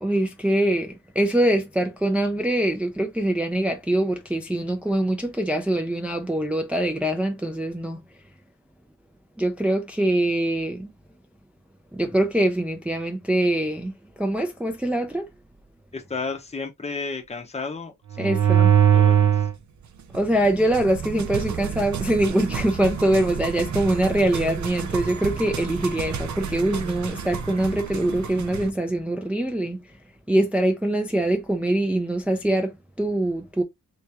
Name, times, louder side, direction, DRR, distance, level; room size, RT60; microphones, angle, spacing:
voice 1, 0.0-8.0 9.4-10.9 11.9-15.3 18.2-18.7 20.1-29.8 30.3-33.6, right 1 dB, 5° right, 0.5 m, -23 dB
voice 2, 15.9-18.7 18.9-19.5, left 4 dB, 20° left, 0.8 m, -33 dB
sound 1, 18.1-19.6 20.1-28.7, right 8 dB, 55° right, 0.6 m, -25 dB
3.4 x 3.2 x 2.9 m
wide cardioid pair, 115°, 36 cm